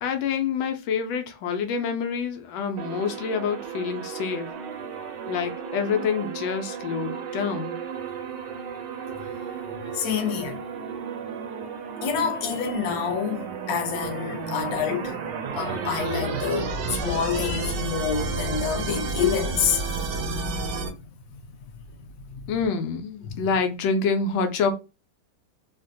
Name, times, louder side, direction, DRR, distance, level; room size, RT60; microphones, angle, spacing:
voice 1, 0.0-4.5 5.3-7.8 22.5-24.7, left 5 dB, 85° left, 1.4 m, -27 dB
sound 1, 2.8-20.9, right 4 dB, 75° right, 1.2 m, -32 dB
voice 2, 9.9-10.6 12.0-15.2 15.6-19.8 23.3-23.4, left 7 dB, 60° left, 1.1 m, -27 dB
3.9 x 2.1 x 2.6 m
omnidirectional pair, 2.1 m